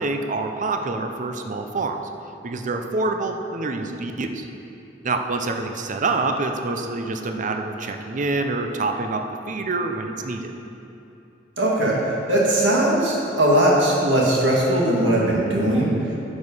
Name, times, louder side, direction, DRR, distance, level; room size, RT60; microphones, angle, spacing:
voice 1, 0.0-2.0 2.4-4.5 5.0-10.5, right 3 dB, 45° right, 5 dB, 0.6 m, -26 dB
voice 2, 11.6-11.9 12.3-15.9, right 1 dB, 80° right, -4 dB, 2.1 m, -19 dB
10.0 x 6.2 x 5.5 m, 2.9 s
head